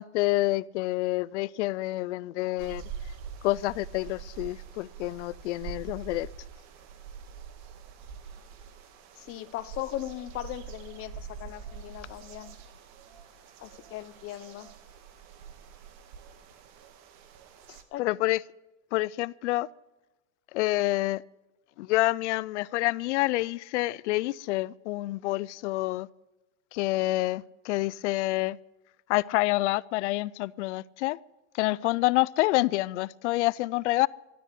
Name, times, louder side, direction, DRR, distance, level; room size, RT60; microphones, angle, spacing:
voice 1, 0.0-2.8 3.4-6.3 18.0-18.4 18.9-19.7 20.5-21.2 21.8-26.1 26.7-28.6 29.1-31.2 31.5-34.1, left 19 dB, 85° left, 0.5 m, -27 dB
sound 1, 2.6-17.8, right 7 dB, 50° right, 1.9 m, -45 dB
voice 2, 9.2-12.6 13.6-14.7 17.9-18.0, left 14 dB, 40° left, 0.9 m, -38 dB
13.0 x 12.0 x 8.3 m
supercardioid pair, 135°, 34 cm